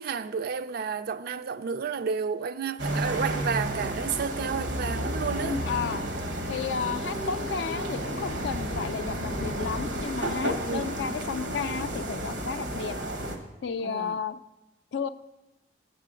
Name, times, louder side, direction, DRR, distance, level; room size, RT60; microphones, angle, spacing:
voice 1, 0.0-5.6 10.7-10.9 13.8-14.2, right 6 dB, 60° right, 0.4 m, -31 dB
sound 1, 2.8-13.4, equal, 80° right, 0.9 m, -31 dB
voice 2, 5.6-6.0 6.5-13.0 13.6-14.4 14.9-15.1, left 6 dB, 75° left, 0.4 m, -33 dB
8.1 x 6.7 x 4.9 m
head